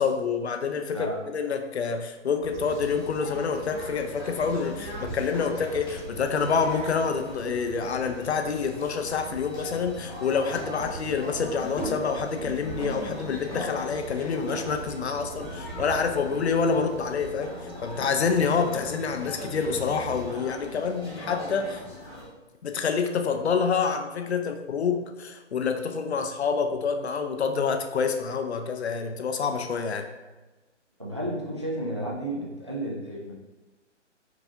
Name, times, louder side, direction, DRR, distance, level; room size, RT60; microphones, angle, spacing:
voice 1, 0.0-21.8 22.6-30.1, left 5 dB, 60° left, 6 dB, 0.5 m, -27 dB
sound 1, 2.4-20.3, right 4 dB, 75° right, 0.6 m, -43 dB
sound 2, 2.6-22.3, left 1 dB, 20° left, 0.9 m, -39 dB
voice 2, 31.0-33.3, right 1 dB, 25° right, -4 dB, 0.3 m, -32 dB
4.7 x 2.4 x 2.7 m, 1.1 s
figure-of-eight pair, 145°, 36 cm